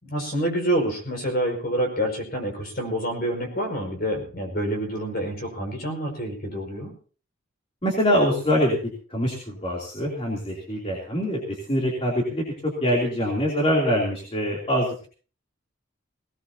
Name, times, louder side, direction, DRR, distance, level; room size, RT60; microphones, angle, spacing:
voice 1, 0.0-6.9, right 1 dB, 45° left, 3 dB, 5.6 m, -27 dB
voice 2, 7.8-8.8 9.1-14.9, equal, 30° left, -2 dB, 3.2 m, -24 dB
19.0 x 18.5 x 2.9 m, 0.40 s
head